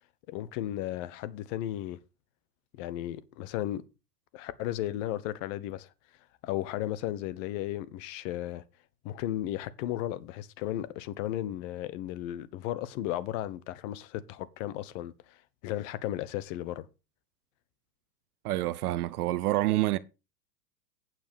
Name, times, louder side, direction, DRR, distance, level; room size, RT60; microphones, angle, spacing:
voice 1, 0.3-2.0 2.8-3.8 4.3-5.9 6.4-8.6 9.0-15.4 15.6-16.9, left 13 dB, 50° left, 1.2 m, -35 dB
voice 2, 18.4-20.0, right 16 dB, 60° right, 0.8 m, -27 dB
9.3 x 7.4 x 5.4 m
hypercardioid pair, 110°, 50 cm